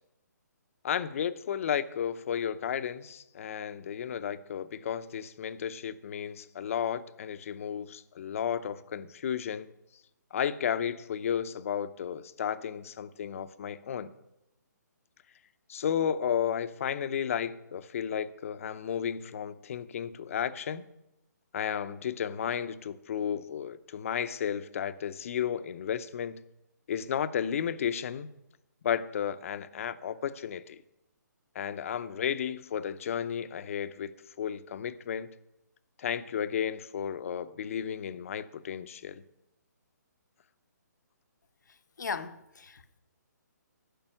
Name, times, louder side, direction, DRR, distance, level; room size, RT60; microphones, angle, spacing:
voice 1, 0.8-9.7 10.3-14.1 15.7-20.8 21.5-26.4 26.9-28.3 28.8-30.8 31.5-34.1 34.4-35.3 36.0-39.2, left 8 dB, 50° left, 0.7 m, -33 dB
voice 2, 42.0-43.0, left 5 dB, 75° left, 0.9 m, -38 dB
11.5 x 5.4 x 8.9 m
hypercardioid pair, 150°, 10 cm